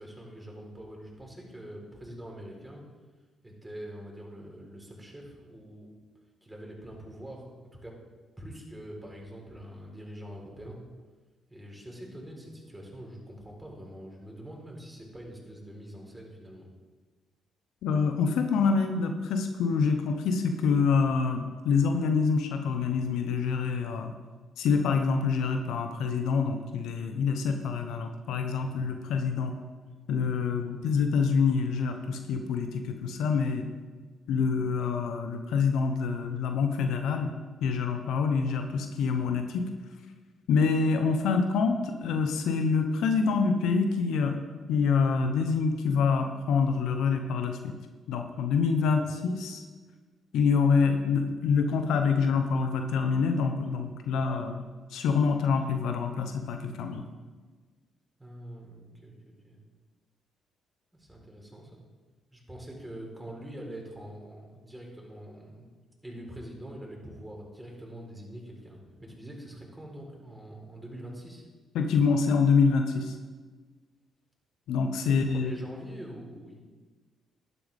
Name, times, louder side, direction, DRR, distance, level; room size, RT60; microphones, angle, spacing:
voice 1, 0.0-2.8 3.4-6.0 6.4-8.0 8.4-10.8 11.5-16.7 48.8-49.1 58.2-59.6 60.9-61.8 62.3-65.7 66.0-71.4 74.9-76.6, right 1 dB, 10° right, -1 dB, 4.2 m, -44 dB
voice 2, 17.8-24.1 24.6-29.5 30.1-33.7 34.3-37.3 37.6-39.7 40.5-44.4 44.7-47.7 48.1-49.6 50.3-54.6 54.9-57.0 71.7-73.1 74.7-75.5, left 5 dB, 75° left, 6 dB, 1.0 m, -26 dB
12.0 x 11.5 x 3.6 m, 1.4 s
hypercardioid pair, 50°, 0 cm